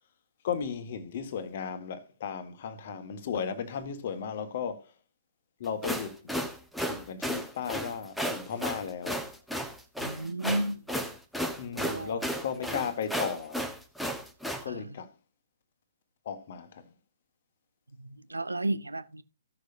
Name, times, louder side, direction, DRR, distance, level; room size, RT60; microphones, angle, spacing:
voice 1, 0.4-4.9 5.6-6.2 6.8-9.2 11.6-13.6 14.6-15.1 16.2-16.9, left 7 dB, 40° left, 1.5 m, -35 dB
sound 1, 5.6-14.6, equal, ahead, 1.0 m, -33 dB
voice 2, 10.0-10.8 11.7-12.2 14.7-15.0 18.0-19.2, right 1 dB, 75° right, 0.8 m, -33 dB
16.0 x 6.6 x 2.6 m
figure-of-eight pair, 125°, 0 cm